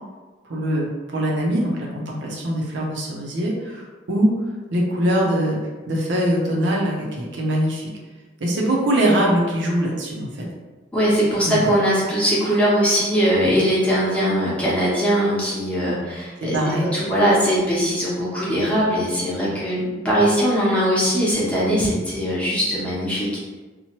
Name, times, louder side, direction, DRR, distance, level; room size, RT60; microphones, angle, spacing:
voice 1, 0.5-3.8 4.1-4.3 4.7-5.6 5.9-7.9 8.4-10.3 11.4-11.7 16.4-16.9, right 1 dB, 80° right, -2 dB, 0.6 m, -22 dB
voice 2, 10.9-16.6 16.9-23.3, equal, 5° left, -8 dB, 0.8 m, -20 dB
2.8 x 2.1 x 2.9 m, 1.3 s
head